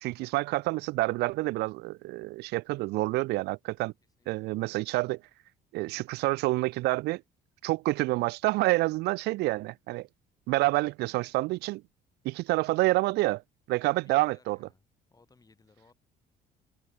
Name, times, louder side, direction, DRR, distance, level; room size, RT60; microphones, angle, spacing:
voice 1, 0.0-3.9 4.3-5.2 5.7-7.2 7.6-10.1 10.5-11.8 12.2-13.4 13.7-14.6, right 20 dB, 80° right, 0.4 m, -28 dB
voice 2, 4.2-4.5 13.8-14.8 15.1-15.9, left 4 dB, 20° left, 6.6 m, -62 dB
cardioid pair, 110°, 17 cm